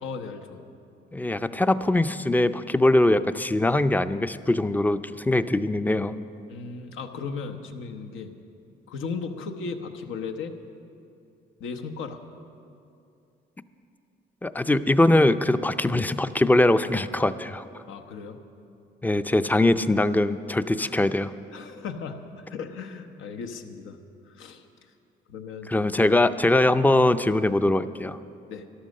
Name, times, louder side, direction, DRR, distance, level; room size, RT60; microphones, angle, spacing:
voice 1, 0.0-0.6 6.5-8.3 8.9-10.5 11.6-12.2 14.7-14.8 17.9-18.4 20.8-21.0 21.5-24.0 24.3-24.6 25.3-25.7 28.5-28.7, left 5 dB, 85° left, 6 dB, 1.0 m, -36 dB
voice 2, 1.1-6.2 14.4-17.6 19.0-21.3 25.7-28.2, left 1 dB, 10° left, 13 dB, 0.4 m, -22 dB
13.0 x 12.0 x 6.5 m, 2.6 s
cardioid pair, 90°, 20 cm